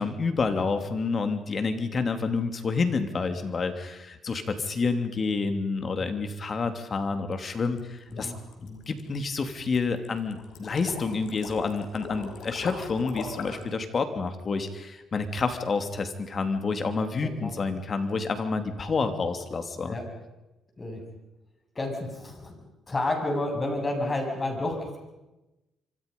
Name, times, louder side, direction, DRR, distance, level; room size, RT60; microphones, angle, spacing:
voice 1, 0.0-8.3 8.9-20.0, left 4 dB, 40° left, 8 dB, 2.9 m, -29 dB
sound 1, 7.7-13.7, left 4 dB, 75° left, 5.4 m, -40 dB
voice 2, 17.2-17.5 19.9-20.0 20.8-21.0 21.7-22.5 22.9-25.0, left 2 dB, 25° left, 3 dB, 7.6 m, -30 dB
26.5 x 24.5 x 5.5 m, 0.99 s
cardioid pair, 90°, 0 cm